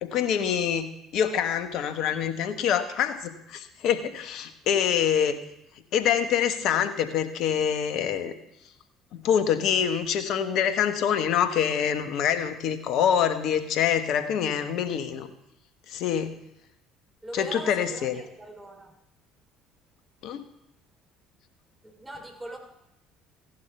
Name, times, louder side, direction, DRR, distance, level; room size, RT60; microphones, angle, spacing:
voice 1, 0.0-5.4 5.9-8.3 9.1-15.3 15.9-16.4 17.3-18.2 20.2-20.4, left 8 dB, 60° left, 9 dB, 1.2 m, -25 dB
voice 2, 17.2-19.0 21.8-22.6, right 1 dB, 10° right, 2 dB, 3.7 m, -41 dB
15.5 x 11.0 x 3.4 m, 0.86 s
hypercardioid pair, 60°, 0 cm